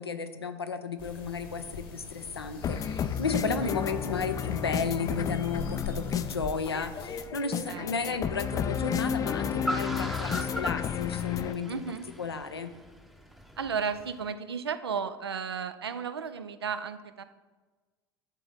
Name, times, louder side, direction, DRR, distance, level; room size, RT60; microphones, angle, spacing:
voice 1, 0.0-11.8 12.2-12.7, left 5 dB, 85° left, 9 dB, 0.5 m, -33 dB
sound 1, 1.0-7.3, left 3 dB, 65° left, 1.3 m, -43 dB
sound 2, 2.6-11.5, left 8 dB, 25° left, 0.4 m, -32 dB
Car, 6.8-14.2, equal, ahead, 0.7 m, -41 dB
voice 2, 7.7-8.2 11.7-12.0 13.6-17.2, right 6 dB, 80° right, 11 dB, 0.4 m, -34 dB
9.0 x 3.8 x 4.1 m, 1.3 s
figure-of-eight pair, 70°, 13 cm